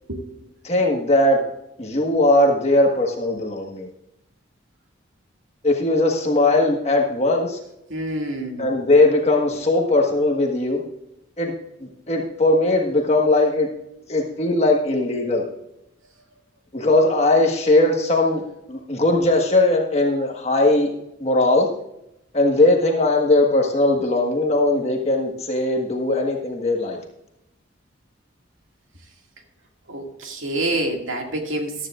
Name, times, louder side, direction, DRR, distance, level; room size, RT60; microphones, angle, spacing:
voice 1, 0.6-1.4 1.8-3.9 5.6-7.6 8.6-10.8 11.4-11.5 11.8-13.7 14.1-15.4 16.7-18.4 18.7-20.9 21.2-21.7 22.3-27.0, left 2 dB, 30° left, 0 dB, 1.5 m, -19 dB
voice 2, 7.9-8.7 29.9-31.9, right 1 dB, 80° right, 2 dB, 2.2 m, -27 dB
14.5 x 12.5 x 2.5 m, 0.83 s
head